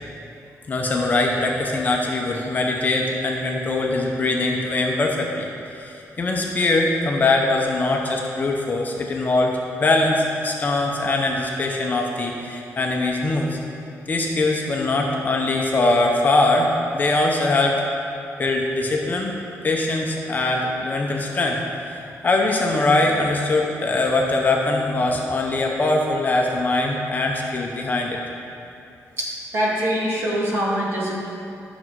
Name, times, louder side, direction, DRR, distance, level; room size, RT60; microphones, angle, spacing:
voice 1, 0.7-5.5 5.7-13.6 14.1-17.8 18.4-19.3 19.6-21.6 22.2-28.2, left 2 dB, 30° left, 0 dB, 0.8 m, -22 dB
voice 2, 29.2-31.1, equal, 45° right, -5 dB, 2.2 m, -24 dB
12.0 x 6.2 x 4.7 m, 2.7 s
wide cardioid pair, 170°, 6 cm